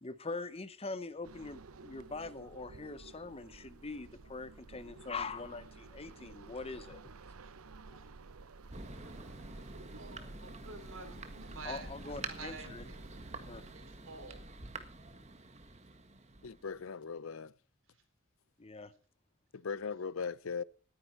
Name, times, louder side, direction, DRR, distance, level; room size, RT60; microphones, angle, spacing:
voice 1, 0.0-7.0 7.9-8.0 9.2-9.6 11.6-12.9 13.5-13.6 18.6-18.9, left 3 dB, 30° left, 0.8 m, -43 dB
sound 1, 1.2-13.8, right 3 dB, 90° right, 0.8 m, -53 dB
Thunder, 8.7-17.0, right 3 dB, 30° right, 1.6 m, -48 dB
voice 2, 9.9-13.0 13.7-14.5, right 4 dB, 70° right, 4.1 m, -49 dB
voice 3, 16.4-17.5 19.5-20.6, left 5 dB, 70° left, 0.6 m, -39 dB
19.0 x 9.8 x 4.4 m
head